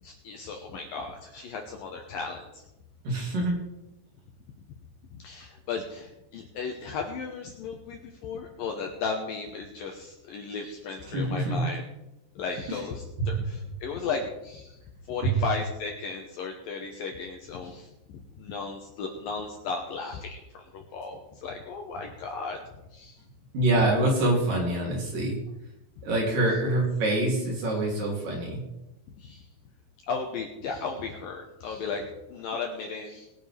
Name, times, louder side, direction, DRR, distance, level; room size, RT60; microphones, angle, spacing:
voice 1, 0.0-2.6 5.1-11.8 12.4-14.8 15.1-17.9 18.4-22.6 22.9-23.2 29.2-29.5 30.1-33.3, left 4 dB, 70° left, 2 dB, 2.3 m, -35 dB
voice 2, 3.0-3.6 11.1-11.7 12.7-12.8 23.5-25.4 26.0-28.6, right 1 dB, 50° right, -2 dB, 4.2 m, -25 dB
21.0 x 9.2 x 3.4 m, 0.95 s
omnidirectional pair, 5.1 m